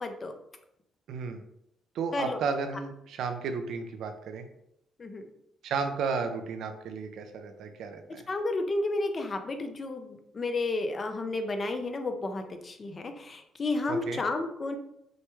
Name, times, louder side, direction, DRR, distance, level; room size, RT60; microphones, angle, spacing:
voice 1, 0.0-0.3 2.1-2.4 5.0-5.3 8.3-14.8, left 2 dB, 35° left, 6 dB, 0.7 m, -32 dB
voice 2, 1.1-1.4 1.9-4.5 5.6-8.3 13.9-14.2, right 5 dB, 75° right, 7 dB, 0.6 m, -33 dB
6.2 x 2.2 x 3.1 m, 0.77 s
cardioid pair, 90°, 0 cm